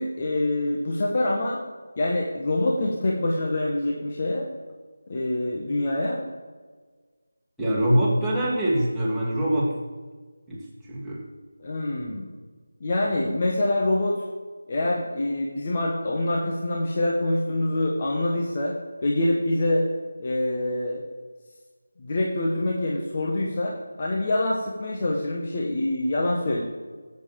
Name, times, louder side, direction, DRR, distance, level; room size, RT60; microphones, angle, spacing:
voice 1, 0.0-1.6 2.0-4.5 5.1-6.2 11.6-12.3 12.8-14.2 14.7-18.8 19.0-19.9 20.2-21.0 22.0-26.6, left 1 dB, 30° left, -1 dB, 1.7 m, -25 dB
voice 2, 7.6-9.7 10.5-11.2, right 1 dB, ahead, -11 dB, 2.9 m, -24 dB
17.5 x 8.3 x 7.2 m, 1.4 s
figure-of-eight pair, 160°, 0 cm